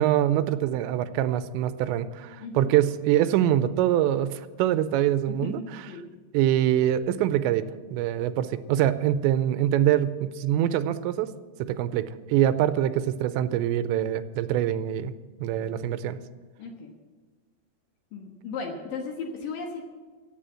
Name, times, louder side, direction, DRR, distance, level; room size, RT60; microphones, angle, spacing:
voice 1, 0.0-5.6 6.3-7.6 7.9-11.3 11.6-15.1 15.4-16.2, right 11 dB, 90° right, 13 dB, 2.9 m, -24 dB
voice 2, 2.4-2.7 5.3-6.1 15.5-15.8 16.6-16.9 18.1-19.8, left 4 dB, 65° left, 2 dB, 2.5 m, -36 dB
16.0 x 8.3 x 7.7 m, 1.4 s
omnidirectional pair, 5.1 m